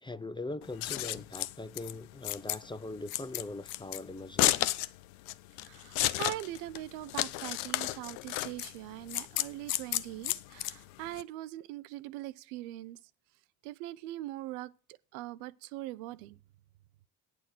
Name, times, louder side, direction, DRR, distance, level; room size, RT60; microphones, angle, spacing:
voice 1, 0.0-4.5, left 2 dB, 10° left, 0.5 m, -41 dB
Scissors, 0.6-11.2, left 17 dB, 70° left, 0.6 m, -33 dB
voice 2, 5.6-13.0 13.6-16.4, right 16 dB, 75° right, 0.6 m, -42 dB
9.1 x 6.0 x 7.7 m
hypercardioid pair, 45°, 44 cm